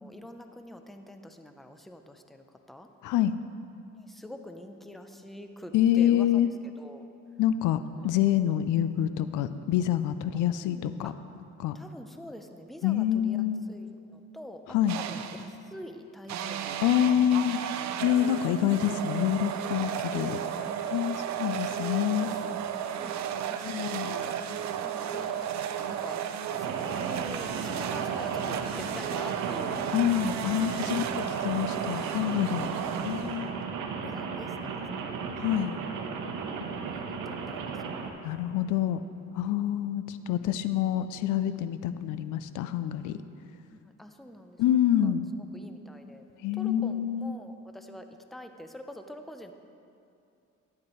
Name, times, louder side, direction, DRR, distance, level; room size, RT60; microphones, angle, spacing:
voice 1, 0.0-2.9 4.0-6.3 6.8-7.0 8.0-8.1 10.3-11.1 11.7-14.6 14.9-16.9 21.4-22.5 22.8-24.4 24.8-25.4 25.9-26.2 26.5-29.9 30.9-31.3 31.5-32.0 34.0-35.2 36.5-38.0 43.7-45.1 45.5-46.2 46.6-49.5, left 1 dB, ahead, 6 dB, 0.6 m, -46 dB
voice 2, 5.7-6.5 7.4-11.1 11.6-11.8 12.8-13.6 14.7-15.0 16.8-17.6 18.0-20.4 20.9-22.3 23.7-24.2 29.9-31.0 31.4-32.7 33.0-33.6 35.4-35.7 38.2-39.0 39.3-43.2 44.6-45.3 46.4-47.3, left 11 dB, 85° left, 12 dB, 0.4 m, -26 dB
sound 1, 14.9-15.5 16.3-33.6, right 9 dB, 65° right, 0.5 m, -34 dB
Rain, 26.6-38.1, right 5 dB, 85° right, 0.9 m, -35 dB
11.5 x 9.6 x 3.1 m, 2.6 s
cardioid pair, 90°, 30 cm